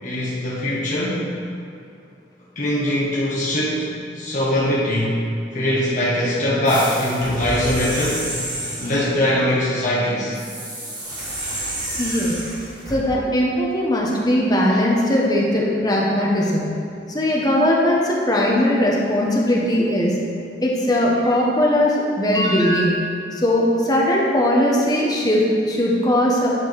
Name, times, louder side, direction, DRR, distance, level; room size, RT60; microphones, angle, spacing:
voice 1, 0.0-1.3 2.5-5.2 5.5-8.3 8.8-10.4, left 1 dB, 40° left, -8 dB, 1.2 m, -21 dB
sound 1, 6.7-9.1 10.3-13.0, right 1 dB, 20° right, 1.6 m, -30 dB
voice 2, 11.9-12.4 12.9-16.7 17.1-20.1 20.6-23.1 23.3-26.5, left 1 dB, 20° left, -3 dB, 1.1 m, -19 dB
10.0 x 4.6 x 4.7 m, 2.5 s
head